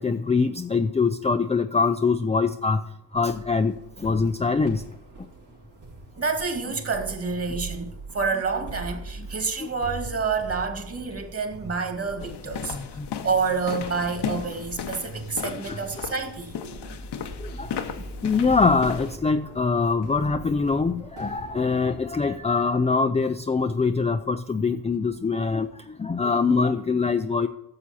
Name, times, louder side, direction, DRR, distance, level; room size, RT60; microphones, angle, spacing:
voice 1, 0.0-2.8 3.1-4.8 9.6-9.7 12.7-13.1 15.5-15.8 17.4-17.9 18.2-27.5, left 4 dB, 15° left, 0.4 m, -24 dB
sound 1, 3.1-22.7, right 3 dB, 70° right, 3.1 m, -42 dB
voice 2, 6.2-12.8 13.2-16.6, right 4 dB, 30° right, 2.0 m, -28 dB
sound 2, 12.2-19.2, left 8 dB, 65° left, 1.0 m, -35 dB
12.5 x 7.3 x 4.3 m
cardioid pair, 120°, 44 cm